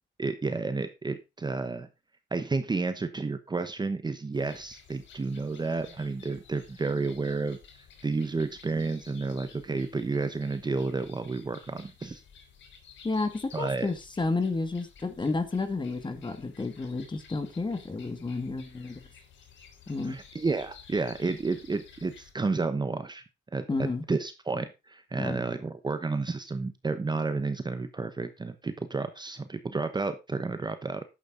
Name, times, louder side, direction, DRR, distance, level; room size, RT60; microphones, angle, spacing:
voice 1, 0.2-1.9 2.3-7.6 8.0-12.2 13.5-13.9 20.0-23.2 23.5-31.0, right 3 dB, 20° right, 10 dB, 1.0 m, -31 dB
sound 1, 4.3-22.3, left 6 dB, 70° left, 3.3 m, -53 dB
voice 2, 13.0-19.0 19.9-20.2 23.7-24.0 25.2-25.4, left 3 dB, 25° left, 9 dB, 2.2 m, -31 dB
11.0 x 8.1 x 3.9 m, 0.27 s
cardioid pair, 90°, 20 cm